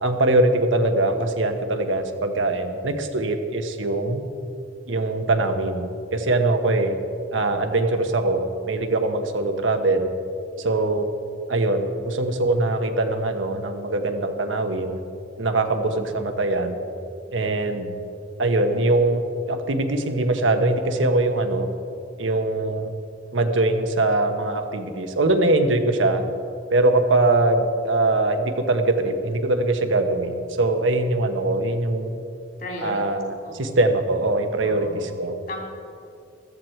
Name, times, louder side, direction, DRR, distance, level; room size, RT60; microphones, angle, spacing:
voice 1, 0.0-4.2 4.9-7.0 7.3-10.1 10.6-11.1 11.5-15.0 15.4-16.8 17.3-17.9 18.4-21.7 22.2-22.9 23.3-26.2 26.7-32.2 32.8-35.4, right 2 dB, 80° right, 6 dB, 1.1 m, -22 dB
voice 2, 32.6-33.0 33.4-33.6 34.6-35.0 35.5-35.6, left 1 dB, 50° left, -1 dB, 3.1 m, -34 dB
14.5 x 13.5 x 4.5 m, 2.6 s
head